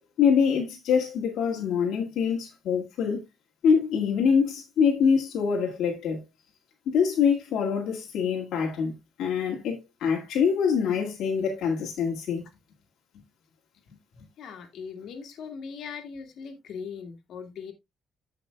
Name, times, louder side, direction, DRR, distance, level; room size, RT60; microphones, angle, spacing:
voice 1, 0.2-3.2 3.6-6.2 6.9-8.9 9.2-12.4, left 6 dB, 80° left, 1.9 m, -24 dB
voice 2, 14.4-17.7, left 6 dB, 65° left, 2.2 m, -39 dB
15.0 x 5.7 x 2.2 m
cardioid pair, 140°, 0 cm